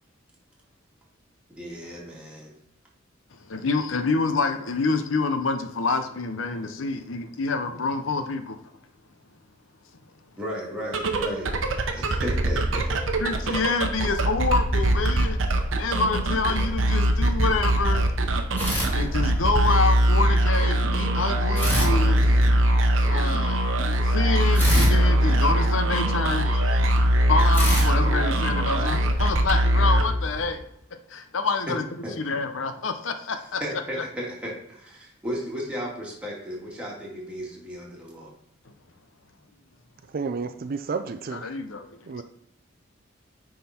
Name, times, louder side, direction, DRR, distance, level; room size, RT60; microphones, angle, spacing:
voice 1, 1.6-2.5 10.4-11.5 11.9-12.9 13.5-13.7 26.4-26.8 31.7-31.8 32.0-32.2 33.3-38.3, equal, 5° right, -4 dB, 2.1 m, -35 dB
voice 2, 3.5-8.6 13.2-15.4 15.8-18.1 18.9-22.3 23.1-23.6 24.0-26.5 27.3-30.6 31.1-31.8 32.2-33.6 41.3-41.9, left 3 dB, 75° left, 8 dB, 0.7 m, -27 dB
sound 1, 10.8-30.6, right 1 dB, 85° right, 0.9 m, -22 dB
sound 2, 18.6-19.7 21.5-22.9 24.5-26.2 27.5-29.1, equal, 10° left, 2.7 m, -30 dB
voice 3, 40.1-41.5 42.1-42.2, right 4 dB, 50° right, 9 dB, 0.4 m, -31 dB
9.5 x 3.9 x 4.3 m, 0.73 s
head